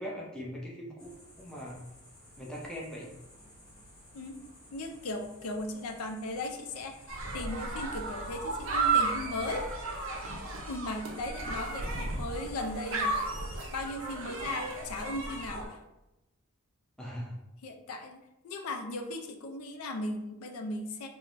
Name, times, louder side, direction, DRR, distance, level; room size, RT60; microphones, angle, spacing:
voice 1, 0.0-1.8 2.4-3.1 17.0-17.4, equal, 5° left, -4 dB, 0.5 m, -40 dB
sound 1, 1.0-15.6, equal, 40° left, 1.1 m, -55 dB
voice 2, 4.7-9.6 10.7-13.2 13.7-15.8 17.6-18.2 18.4-21.1, left 2 dB, 75° left, 5 dB, 0.4 m, -37 dB
sound 2, 7.1-15.6, right 3 dB, 60° right, 0.6 m, -33 dB
4.5 x 2.1 x 2.5 m, 0.95 s
head